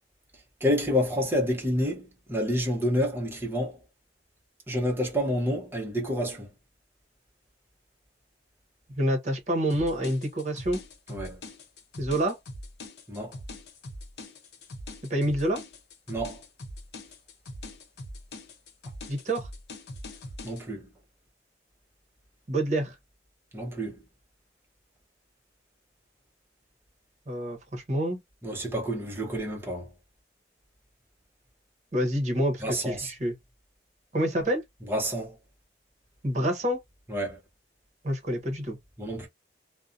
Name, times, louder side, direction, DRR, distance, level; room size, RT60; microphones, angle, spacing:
voice 1, 0.6-3.8 4.7-6.5 11.1-11.4 13.1-13.3 16.1-16.4 20.4-20.9 23.5-24.0 28.4-29.9 32.6-33.1 34.9-35.4 37.1-37.4 39.0-39.3, equal, 15° right, 0.7 m, -28 dB
voice 2, 8.9-10.8 12.0-12.4 15.1-15.6 19.1-19.5 22.5-22.9 27.3-28.2 31.9-33.4 34.1-34.6 36.2-36.8 38.0-38.8, right 1 dB, 40° right, 0.9 m, -27 dB
sound 1, 9.7-20.6, left 1 dB, 70° left, 0.7 m, -42 dB
2.6 x 2.1 x 2.4 m
head